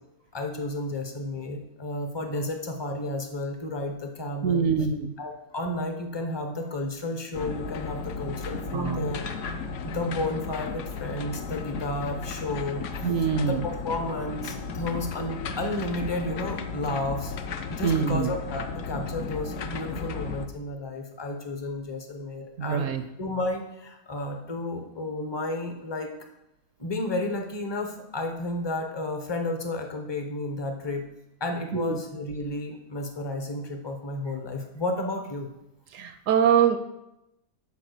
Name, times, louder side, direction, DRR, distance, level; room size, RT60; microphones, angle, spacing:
voice 1, 0.3-4.7 5.2-9.2 9.8-12.8 13.5-17.3 17.7-22.9 23.2-26.1 26.8-31.0 31.4-35.5, left 2 dB, 25° left, 4 dB, 0.5 m, -32 dB
voice 2, 4.4-5.1 8.7-9.1 13.0-13.6 17.8-18.3 22.6-23.0 31.7-32.0 35.9-36.8, right 7 dB, 70° right, 8 dB, 0.8 m, -24 dB
sound 1, 7.3-20.5, left 4 dB, 60° left, 0.8 m, -35 dB
7.0 x 5.0 x 6.6 m, 0.89 s
omnidirectional pair, 1.8 m